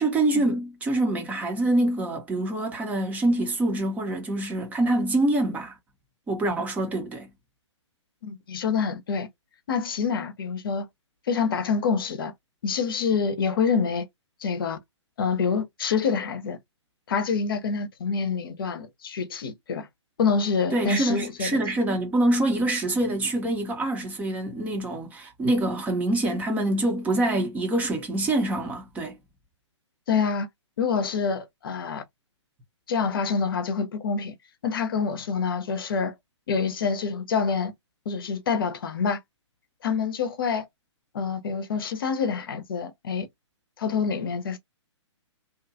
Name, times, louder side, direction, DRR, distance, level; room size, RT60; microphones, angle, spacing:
voice 1, 0.0-5.8 6.3-7.3 20.7-29.2, right 1 dB, 10° right, 0.7 m, -25 dB
voice 2, 8.2-9.3 9.7-10.9 11.3-12.3 12.6-14.1 14.4-14.8 15.2-16.6 17.1-19.9 20.2-21.6 30.1-30.5 30.8-32.0 32.9-34.3 34.6-36.1 36.5-37.7 38.1-39.2 39.8-40.7 41.1-43.3 43.8-44.6, left 5 dB, 45° left, 0.7 m, -26 dB
2.8 x 2.3 x 2.5 m
figure-of-eight pair, 125°, 16 cm